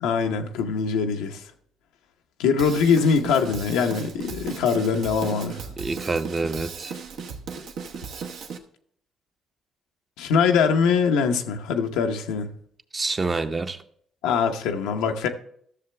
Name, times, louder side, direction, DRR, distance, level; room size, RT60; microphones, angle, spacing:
voice 1, 0.0-1.4 2.4-5.6 10.2-12.5 14.2-15.3, left 6 dB, 90° left, 0.8 m, -22 dB
Drum kit / Drum, 2.6-8.6, right 5 dB, 75° right, 0.9 m, -36 dB
voice 2, 5.8-6.9 12.9-13.8, right 3 dB, 30° right, 0.7 m, -27 dB
13.5 x 6.7 x 3.3 m
supercardioid pair, 75°, 0 cm